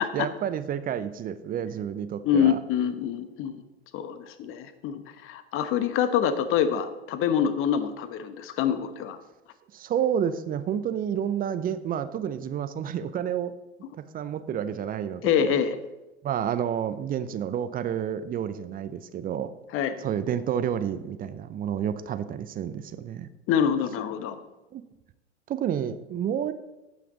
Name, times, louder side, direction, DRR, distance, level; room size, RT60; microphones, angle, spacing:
voice 1, 0.1-2.6 9.7-13.5 14.1-15.5 16.2-19.5 20.0-23.3 24.7-24.8 25.5-26.5, right 9 dB, 25° right, 12 dB, 0.6 m, -30 dB
voice 2, 2.2-3.6 3.9-9.2 15.2-15.8 19.7-20.0 23.5-24.4, left 8 dB, 40° left, 12 dB, 1.0 m, -26 dB
15.0 x 5.9 x 3.9 m, 1.0 s
hypercardioid pair, 85°, 34 cm